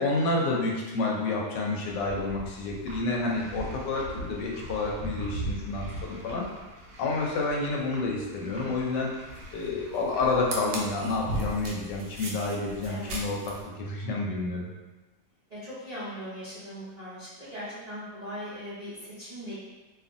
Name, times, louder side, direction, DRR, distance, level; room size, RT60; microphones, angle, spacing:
voice 1, 0.0-6.4 7.0-9.1 9.5-13.3 13.8-14.7, left 3 dB, 75° left, -2 dB, 1.2 m, -29 dB
sound 1, 1.8-13.6, right 1 dB, 75° right, 1.1 m, -39 dB
voice 2, 12.9-13.2 15.5-19.5, equal, 60° right, -13 dB, 0.4 m, -39 dB
2.7 x 2.4 x 2.5 m, 1.1 s
omnidirectional pair, 1.9 m